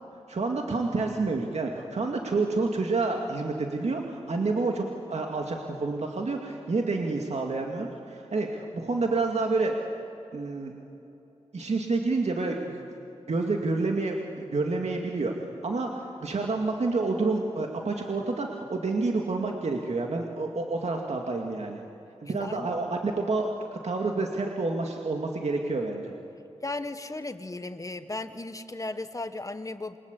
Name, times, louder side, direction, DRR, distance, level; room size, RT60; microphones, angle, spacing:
voice 1, 0.3-9.7 10.3-10.7 11.5-12.8 13.3-15.3 15.6-21.8 22.2-26.1, right 3 dB, 70° right, 1 dB, 2.3 m, -29 dB
voice 2, 22.2-22.7 26.6-30.0, left 2 dB, 30° left, 10 dB, 1.5 m, -36 dB
28.0 x 23.5 x 8.5 m, 3.0 s
wide cardioid pair, 85°, 12 cm